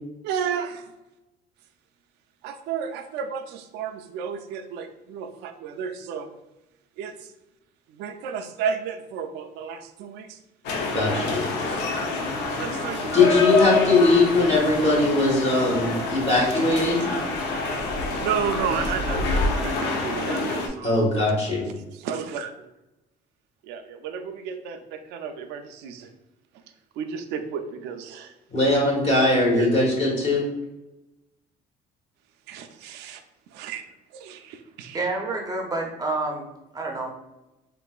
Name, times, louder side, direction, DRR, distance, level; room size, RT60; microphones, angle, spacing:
voice 1, 0.2-0.9 2.4-6.3 7.0-7.3 7.9-10.4 12.6-13.5 18.2-20.9 21.9-22.5 23.6-26.1 27.0-28.3 29.5-29.7 30.2-30.3 32.5-33.2 33.6-33.8 34.1-35.1, right 7 dB, 90° right, 6 dB, 0.4 m, -32 dB
sound 1, 10.6-20.7, left 3 dB, 85° left, 0.5 m, -27 dB
voice 2, 10.9-11.4 13.1-17.0 20.8-21.6 28.5-30.4, left 2 dB, 35° left, -3 dB, 1.5 m, -20 dB
voice 3, 34.9-36.4 36.7-37.1, right 2 dB, 20° right, 0 dB, 0.5 m, -28 dB
3.7 x 2.5 x 2.3 m, 0.97 s
cardioid pair, 110°, 17 cm